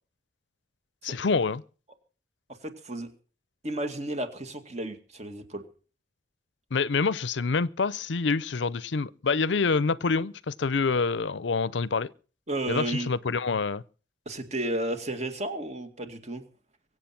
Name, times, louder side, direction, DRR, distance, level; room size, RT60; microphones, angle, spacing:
voice 1, 1.0-1.6 6.7-12.1 12.7-13.8, left 4 dB, 85° left, 0.6 m, -26 dB
voice 2, 2.6-3.1 3.6-5.6 12.5-13.1 14.3-16.4, right 1 dB, 40° right, 2.2 m, -33 dB
23.5 x 8.3 x 5.9 m
head